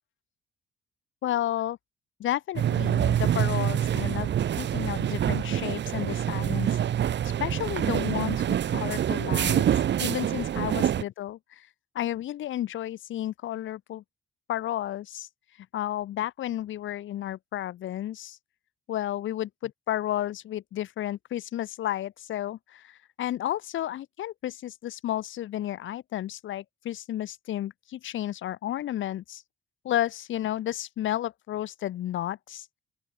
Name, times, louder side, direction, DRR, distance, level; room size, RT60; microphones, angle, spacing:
voice 1, 1.2-1.8 2.2-6.7 7.4-9.6 10.0-11.7 11.9-14.0 14.5-15.3 15.6-18.4 18.9-29.4 29.8-32.8, left 12 dB, 75° left, 3.3 m, -32 dB
sound 1, 2.5-11.0, right 10 dB, 65° right, 2.2 m, -26 dB
open air
cardioid pair, 90°, 20 cm